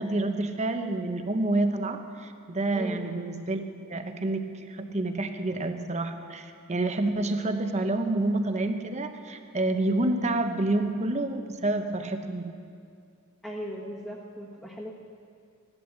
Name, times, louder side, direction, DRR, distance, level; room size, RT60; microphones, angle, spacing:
voice 1, 0.0-3.6 3.9-12.5, right 2 dB, 30° right, 7 dB, 0.9 m, -28 dB
voice 2, 2.7-3.1 13.4-14.9, equal, 5° left, -6 dB, 1.4 m, -38 dB
16.5 x 12.0 x 7.3 m, 2.3 s
head